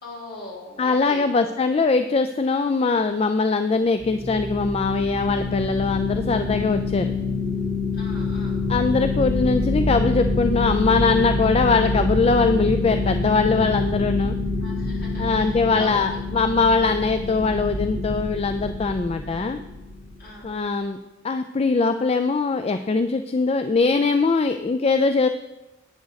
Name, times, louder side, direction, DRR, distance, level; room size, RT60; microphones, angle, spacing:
voice 1, 0.0-1.3 7.9-8.6 14.6-15.3 15.7-16.2 20.2-20.5, left 2 dB, 55° left, -6 dB, 4.2 m, -39 dB
voice 2, 0.8-7.1 8.7-14.4 15.2-19.6 20.4-21.0 21.2-25.3, left 4 dB, 30° left, 9 dB, 0.4 m, -21 dB
sound 1, 4.0-20.3, left 3 dB, 20° right, 2.0 m, -26 dB
11.5 x 9.1 x 4.0 m, 1.0 s
head